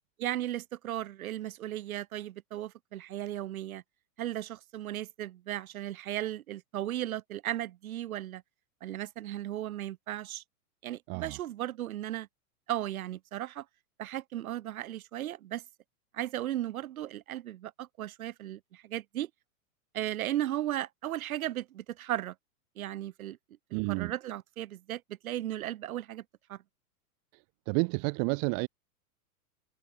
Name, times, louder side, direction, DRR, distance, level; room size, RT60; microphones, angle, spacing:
voice 1, 0.2-3.8 4.2-8.4 8.8-10.4 10.8-12.3 12.7-13.7 14.0-15.6 16.1-19.3 19.9-22.3 22.8-23.4 23.7-26.2 26.5-26.6, right 13 dB, 65° right, 6.2 m, -36 dB
voice 2, 11.1-11.4 23.7-24.1 27.7-28.7, right 40 dB or more, 35° right, 3.3 m, -30 dB
supercardioid pair, 160°, 45 cm